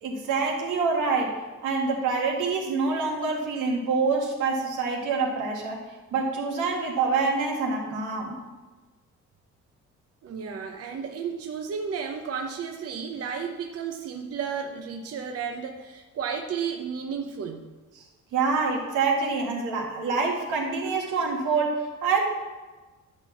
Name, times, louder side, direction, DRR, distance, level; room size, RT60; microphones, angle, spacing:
voice 1, 0.0-1.4 1.6-5.8 6.1-8.4 18.3-22.2, right 4 dB, 90° right, 0 dB, 1.8 m, -26 dB
voice 2, 10.2-17.6, right 6 dB, 50° right, 4 dB, 0.8 m, -33 dB
10.5 x 4.1 x 7.3 m, 1.3 s
cardioid pair, 90°, 30 cm